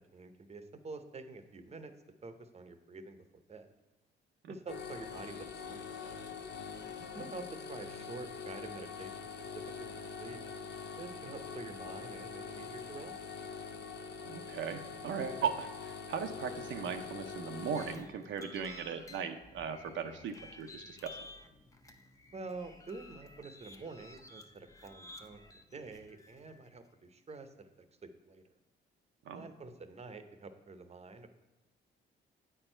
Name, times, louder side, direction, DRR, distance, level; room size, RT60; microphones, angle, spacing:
voice 1, 0.0-1.9 2.2-3.2 3.5-3.7 4.5-5.4 5.7-6.2 7.1-9.2 9.9-10.4 11.0-13.2 22.3-25.4 25.7-27.7 28.0-28.4 29.3-31.3, right 3 dB, 30° right, 9 dB, 0.7 m, -47 dB
sound 1, 4.7-17.9, left 5 dB, 60° left, 0.7 m, -44 dB
voice 2, 14.2-21.2 29.3-29.5, right 7 dB, 70° right, 6 dB, 0.6 m, -38 dB
sound 2, 17.8-26.7, left 2 dB, 15° left, 0.6 m, -54 dB
8.6 x 4.5 x 4.4 m, 1.1 s
cardioid pair, 90°, 20 cm